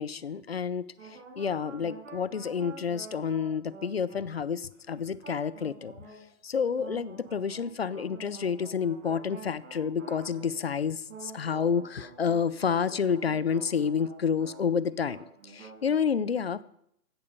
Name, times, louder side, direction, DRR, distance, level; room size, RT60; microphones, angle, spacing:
voice 1, 0.0-5.9 6.4-15.2 15.4-16.6, left 6 dB, 45° left, 19 dB, 0.6 m, -29 dB
sound 1, 1.0-4.7 5.2-6.3 6.8-10.7 11.1-14.7 14.9-15.9, right 4 dB, 55° right, 5.1 m, -48 dB
16.0 x 12.0 x 5.4 m, 0.74 s
hypercardioid pair, 175°, 45 cm